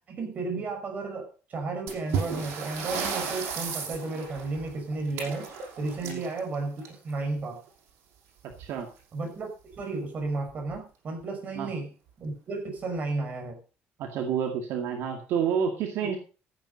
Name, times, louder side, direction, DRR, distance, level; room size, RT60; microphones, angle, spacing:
voice 1, 0.1-5.5 5.8-7.6 9.1-11.9 12.2-13.6, right 3 dB, 40° right, 4 dB, 5.5 m, -33 dB
sound 1, 1.9-7.2 8.5-8.7 9.0-9.1 9.7-9.8 10.5-10.8, right 6 dB, 85° right, 5.9 m, -34 dB
voice 2, 8.4-8.9 11.6-11.7 14.0-16.2, right 7 dB, 70° right, 4 dB, 2.1 m, -29 dB
14.5 x 8.8 x 5.3 m, 0.35 s
cardioid pair, 145°, 4 cm